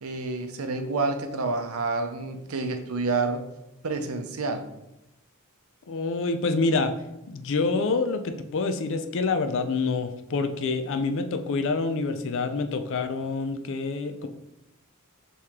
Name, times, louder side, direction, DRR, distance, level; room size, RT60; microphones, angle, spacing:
voice 1, 0.0-3.4 3.8-4.7, right 3 dB, 75° right, 7 dB, 0.6 m, -28 dB
voice 2, 5.9-6.9 7.3-14.3, left 3 dB, 60° left, 8 dB, 0.4 m, -27 dB
4.7 x 3.1 x 3.5 m, 0.90 s
head